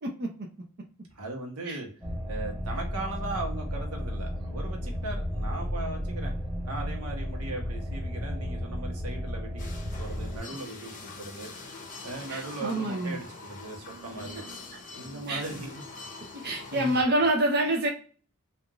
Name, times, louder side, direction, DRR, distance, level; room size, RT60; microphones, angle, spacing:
voice 1, 0.0-0.5 1.7-1.8 12.3-13.2 15.3-15.4 16.3-17.9, right 1 dB, 45° right, 0 dB, 0.6 m, -27 dB
voice 2, 1.1-1.9 2.3-6.3 6.6-11.5 12.0-14.4 15.0-15.8 16.7-17.0, right 2 dB, 80° right, 1 dB, 1.0 m, -38 dB
sound 1, 2.0-10.4, equal, 5° right, 0.6 m, -33 dB
sound 2, 9.6-17.0, left 3 dB, 35° left, 0.6 m, -44 dB
3.4 x 2.5 x 2.2 m, 0.40 s
head